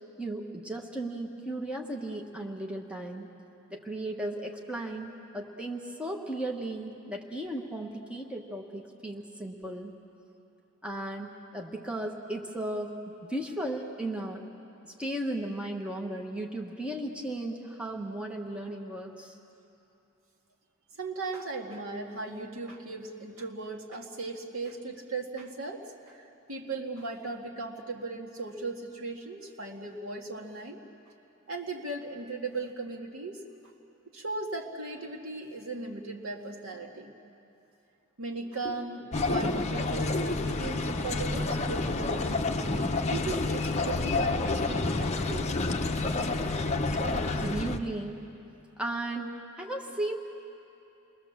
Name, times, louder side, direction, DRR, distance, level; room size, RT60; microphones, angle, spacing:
voice 1, 0.2-3.3 3.7-9.9 10.8-14.4 14.8-19.4 38.6-38.7 47.2-48.2 48.8-50.2, right 1 dB, 5° right, 0 dB, 1.4 m, -36 dB
voice 2, 20.9-30.8 31.5-33.4 34.1-37.1 38.2-42.4 43.1-45.6, right 3 dB, 70° right, 1 dB, 2.1 m, -37 dB
sound 1, 39.1-47.8, left 3 dB, 30° left, 0.8 m, -29 dB
29.0 x 21.0 x 7.4 m, 2.9 s
head